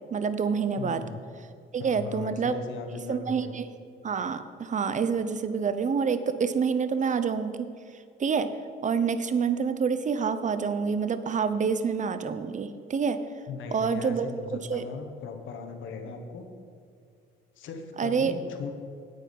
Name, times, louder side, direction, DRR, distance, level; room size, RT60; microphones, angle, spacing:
voice 1, 0.1-1.0 1.7-2.6 3.1-3.7 4.0-7.7 8.2-8.5 8.8-13.2 13.7-14.3 14.5-14.8 18.0-18.3, right 6 dB, 40° right, 11 dB, 0.7 m, -27 dB
voice 2, 0.8-1.2 1.8-3.5 13.5-16.5 17.6-18.7, left 5 dB, 80° left, 5 dB, 1.3 m, -38 dB
9.4 x 8.3 x 5.4 m, 2.4 s
cardioid pair, 90°, 20 cm